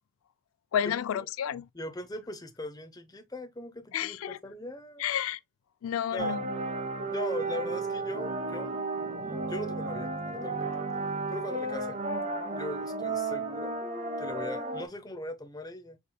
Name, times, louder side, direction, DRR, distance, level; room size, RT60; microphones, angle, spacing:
voice 1, 0.7-1.7 3.9-4.4 5.0-5.4 5.8-6.4, left 9 dB, 85° left, 0.3 m, -30 dB
voice 2, 1.7-5.0 6.1-6.4 7.0-8.8 9.2-10.7 11.3-12.1 12.6-13.7 14.2-16.0, left 2 dB, 20° left, 0.7 m, -40 dB
sound 1, 6.2-14.9, right 3 dB, 35° right, 1.1 m, -33 dB
7.0 x 3.3 x 2.2 m
head